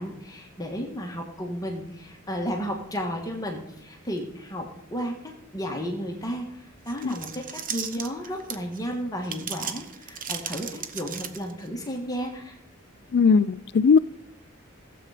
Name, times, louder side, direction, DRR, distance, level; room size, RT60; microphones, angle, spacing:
voice 1, 0.0-12.5, equal, 15° left, 1 dB, 1.7 m, -33 dB
sound 1, 6.9-8.8 9.2-11.7, right 8 dB, 40° right, 1.0 m, -35 dB
voice 2, 13.1-14.0, left 5 dB, 50° left, 19 dB, 0.4 m, -19 dB
16.0 x 7.9 x 5.0 m, 0.75 s
head